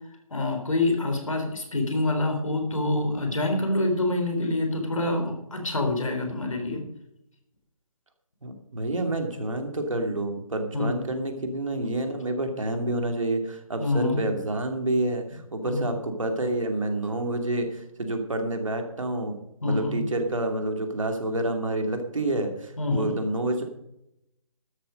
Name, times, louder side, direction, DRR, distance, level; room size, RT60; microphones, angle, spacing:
voice 1, 0.3-6.8 10.7-11.0 13.8-14.2 15.6-15.9 19.6-20.0 22.8-23.1, left 2 dB, 65° left, 3 dB, 3.9 m, -26 dB
voice 2, 8.4-19.3 19.6-23.6, right 2 dB, 65° right, 4 dB, 2.9 m, -28 dB
13.0 x 11.0 x 5.3 m, 0.81 s
figure-of-eight pair, 145°, 18 cm